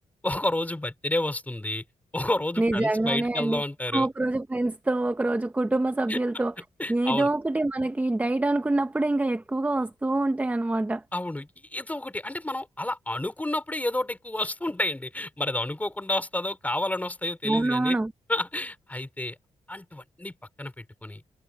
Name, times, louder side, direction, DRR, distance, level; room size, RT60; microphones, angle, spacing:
voice 1, 0.2-1.8 2.1-4.1 6.1-6.2 6.8-7.3 11.1-18.0 18.3-19.4 19.7-20.3 20.6-21.2, left 1 dB, 10° left, 4.9 m, -30 dB
voice 2, 2.6-3.6 3.9-6.5 6.9-11.0 17.4-18.1, right 2 dB, 10° right, 0.8 m, -25 dB
wide cardioid pair, 125°, 13 cm